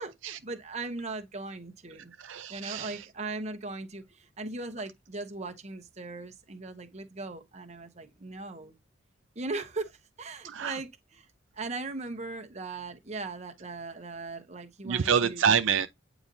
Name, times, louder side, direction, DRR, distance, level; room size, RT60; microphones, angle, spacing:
voice 1, 0.0-2.1 2.5-8.8 9.3-11.3 11.5-15.4, right 3 dB, 35° right, 1.0 m, -39 dB
voice 2, 2.2-3.0 10.4-10.8 14.8-15.9, right 7 dB, 75° right, 0.5 m, -27 dB
8.8 x 3.9 x 2.7 m
head